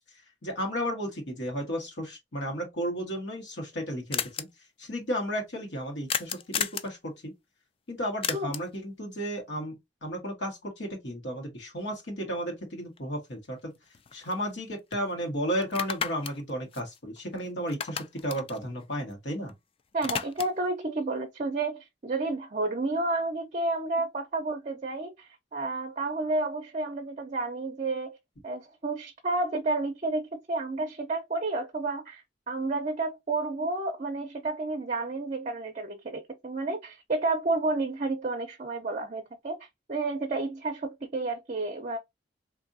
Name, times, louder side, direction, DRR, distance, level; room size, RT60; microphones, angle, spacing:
voice 1, 0.4-4.5 4.8-7.3 7.9-13.7 14.1-19.5, equal, 70° left, 1.3 m, -33 dB
sound 1, 3.2-3.3 3.4-3.5 3.7-3.8 4.1-4.4 6.1-6.9 8.2-8.8 13.0-13.1 13.4-14.6 14.9-15.0 15.6-17.4 17.7-19.5 19.8-20.7, left 7 dB, 30° left, 0.3 m, -34 dB
voice 2, 19.9-28.2 28.4-42.0, right 2 dB, 40° right, 0.6 m, -31 dB
3.6 x 2.6 x 2.6 m
head